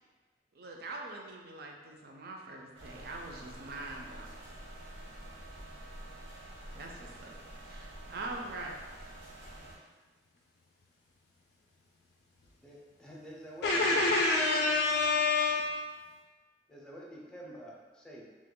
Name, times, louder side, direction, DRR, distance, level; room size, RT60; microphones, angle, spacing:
voice 1, 0.6-4.4 6.7-8.7, right 2 dB, 60° right, 1 dB, 0.4 m, -43 dB
sound 1, 2.7-9.8, right 1 dB, 80° right, 0.9 m, -48 dB
voice 2, 12.6-14.1 16.7-18.2, right 1 dB, 5° left, -4 dB, 0.5 m, -48 dB
voice 3, 13.6-15.9, left 3 dB, 65° left, -2 dB, 0.3 m, -27 dB
2.9 x 2.1 x 3.7 m, 1.3 s
head